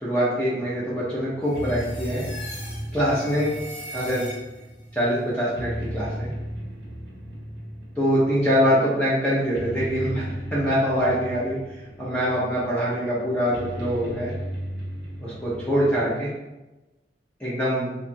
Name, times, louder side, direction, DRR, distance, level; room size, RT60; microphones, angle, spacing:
voice 1, 0.0-2.2 2.9-3.5 3.9-4.3 4.9-6.3 8.0-11.6 12.0-14.3 15.2-16.3 17.4-17.9, equal, 5° left, -8 dB, 0.6 m, -24 dB
sound 1, 0.6-16.2, equal, 80° right, 0.8 m, -36 dB
sound 2, 1.4-4.8, equal, 35° left, 1.0 m, -40 dB
2.9 x 2.4 x 2.6 m, 1.0 s
head